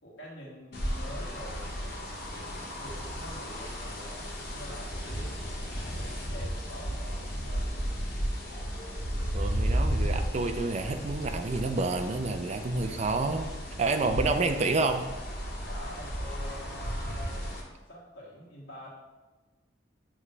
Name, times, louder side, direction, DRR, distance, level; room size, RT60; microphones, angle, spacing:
voice 1, 0.0-1.7 2.3-5.3 5.8-7.8 15.6-17.5 17.9-18.9, equal, 80° left, -7 dB, 1.6 m, -46 dB
sound 1, 0.7-17.6, equal, 60° left, 1.6 m, -34 dB
voice 2, 9.3-13.5 13.8-15.1, right 3 dB, 35° right, 6 dB, 0.4 m, -29 dB
7.4 x 3.3 x 5.5 m, 1.2 s
head